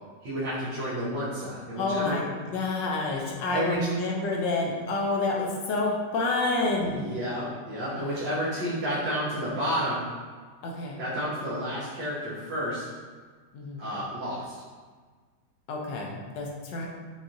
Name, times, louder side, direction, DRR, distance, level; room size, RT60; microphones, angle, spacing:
voice 1, 0.2-2.1 3.5-3.9 6.8-10.0 11.0-12.8 13.8-14.5, equal, 85° right, -11 dB, 1.6 m, -31 dB
voice 2, 1.8-2.2 2.5-7.1 7.9-8.0 10.6-11.0 13.5-13.8 15.7-16.9, left 2 dB, 80° left, -1 dB, 1.3 m, -28 dB
5.7 x 2.4 x 2.6 m, 1.5 s
omnidirectional pair, 2.0 m